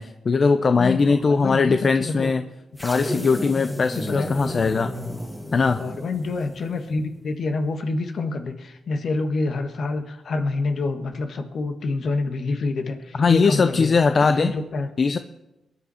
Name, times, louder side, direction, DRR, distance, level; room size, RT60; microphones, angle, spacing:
voice 1, 0.0-2.4 2.8-4.9 5.5-5.8 13.2-14.5 15.0-15.2, left 4 dB, 50° left, 9 dB, 0.7 m, -20 dB
voice 2, 0.8-2.3 2.9-3.3 3.9-4.3 5.8-13.9 14.2-14.9, left 3 dB, 65° left, 6 dB, 1.6 m, -27 dB
sound 1, 2.8-7.1, left 1 dB, 10° left, 2.6 m, -33 dB
22.5 x 9.9 x 4.4 m, 0.96 s
cardioid pair, 70°, 0 cm